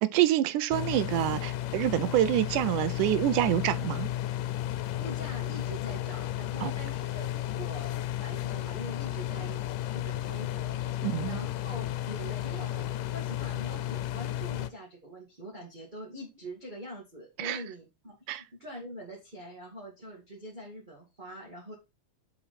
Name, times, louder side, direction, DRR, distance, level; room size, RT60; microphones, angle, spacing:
voice 1, 0.0-4.1 6.6-6.7 11.0-11.4 17.4-17.6 18.3-18.4, right 14 dB, 80° right, 2.1 m, -26 dB
sound 1, 0.7-14.7, left 13 dB, 85° left, 2.3 m, -33 dB
voice 2, 4.7-7.9 8.2-9.6 9.9-21.7, equal, 20° right, 1.8 m, -44 dB
6.9 x 5.3 x 4.2 m
omnidirectional pair, 3.7 m